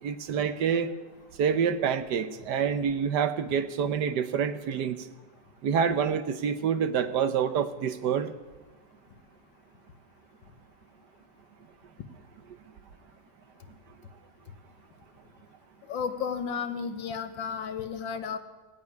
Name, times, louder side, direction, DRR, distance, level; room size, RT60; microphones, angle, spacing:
voice 1, 0.0-0.9 1.4-5.0 5.6-8.3, right 7 dB, 70° right, 11 dB, 1.4 m, -27 dB
voice 2, 15.9-18.4, left 6 dB, 85° left, 8 dB, 1.9 m, -33 dB
17.5 x 8.2 x 9.7 m, 1.2 s
omnidirectional pair, 2.0 m